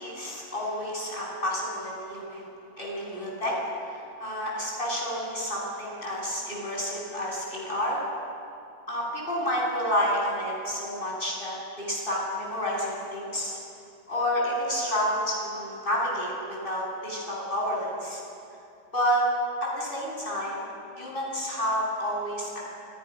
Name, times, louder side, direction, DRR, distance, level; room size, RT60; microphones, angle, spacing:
voice 1, 0.0-2.5 2.8-3.6 3.9-8.0 8.9-13.6 14.1-18.2 18.9-19.3 19.6-20.6 21.0-22.7, equal, 25° left, -3 dB, 8.3 m, -30 dB
30.0 x 28.0 x 6.4 m, 2.6 s
omnidirectional pair, 2.2 m